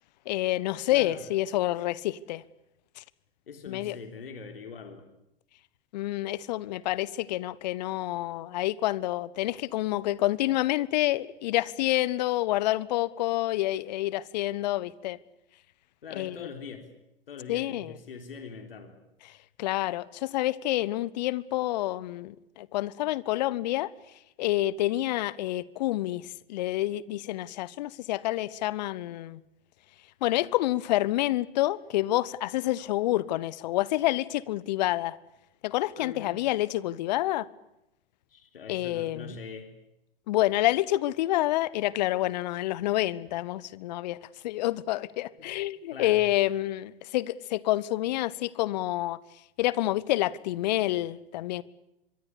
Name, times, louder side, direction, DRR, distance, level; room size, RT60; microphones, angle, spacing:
voice 1, 0.3-2.4 3.0-3.1 3.7-4.0 5.9-15.2 16.2-16.5 17.5-17.9 19.6-23.9 24.4-29.4 30.2-35.2 35.6-37.5 38.7-39.3 40.3-44.2 44.4-49.2 49.6-51.6, left 16 dB, 45° left, 1.2 m, -28 dB
voice 2, 0.9-1.2 3.5-5.1 16.0-16.9 17.3-19.0 36.0-36.4 38.3-39.7 45.4-45.5 45.9-46.2, left 5 dB, 65° left, 3.9 m, -42 dB
25.5 x 23.0 x 8.6 m
figure-of-eight pair, 105°, 30 cm